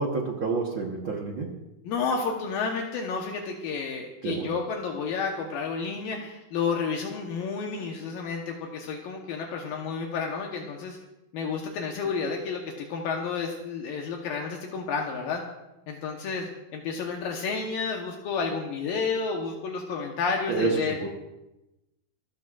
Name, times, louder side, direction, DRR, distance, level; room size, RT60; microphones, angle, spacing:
voice 1, 0.0-1.5 4.2-4.5 20.5-21.1, right 4 dB, 60° right, -1 dB, 1.3 m, -28 dB
voice 2, 1.8-11.0 11.3-15.4 15.9-21.1, left 5 dB, 75° left, 1 dB, 2.8 m, -31 dB
27.5 x 14.5 x 2.5 m, 0.96 s
omnidirectional pair, 4.3 m